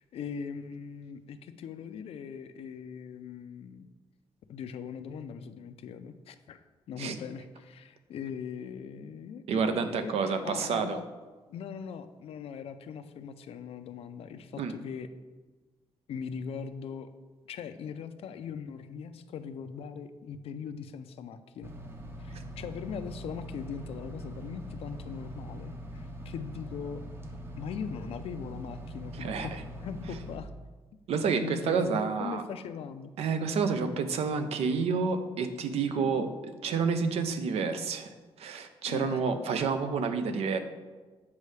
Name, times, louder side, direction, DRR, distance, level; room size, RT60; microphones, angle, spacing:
voice 1, 0.0-3.9 4.5-6.6 6.9-11.0 11.5-15.1 16.1-17.1 17.5-21.7 22.2-27.0 27.6-30.5 31.3-33.1 35.9-36.2 38.9-39.3, left 7 dB, 70° left, 10 dB, 0.5 m, -40 dB
voice 2, 9.5-11.0 14.6-14.7 29.1-29.6 31.1-32.4 33.2-38.1 38.4-40.6, right 5 dB, 80° right, 9 dB, 0.6 m, -29 dB
sound 1, 21.6-30.4, equal, 20° right, 0.6 m, -42 dB
8.2 x 5.4 x 3.3 m, 1.3 s
wide cardioid pair, 150°, 10 cm